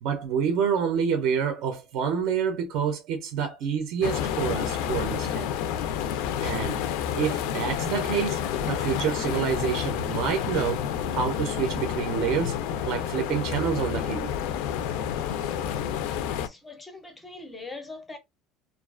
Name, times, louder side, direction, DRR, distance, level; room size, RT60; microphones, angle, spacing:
voice 1, 0.0-5.5 6.4-6.8 7.2-12.6 12.9-14.3, right 7 dB, 50° right, 0.5 m, -28 dB
sound 1, 4.0-16.5, left 9 dB, 65° left, 0.3 m, -29 dB
voice 2, 16.4-18.2, left 3 dB, 10° left, 0.5 m, -42 dB
2.4 x 2.2 x 2.3 m
cardioid pair, 170°, 0 cm